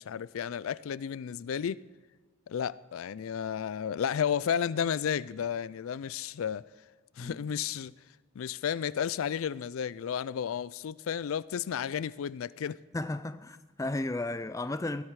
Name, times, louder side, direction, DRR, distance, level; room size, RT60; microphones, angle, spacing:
voice 1, 0.0-1.8 2.5-6.7 7.2-7.9 8.4-12.8, left 8 dB, 80° left, 0.4 m, -32 dB
voice 2, 12.9-15.0, left 2 dB, 15° left, 0.4 m, -34 dB
20.0 x 13.0 x 4.8 m
head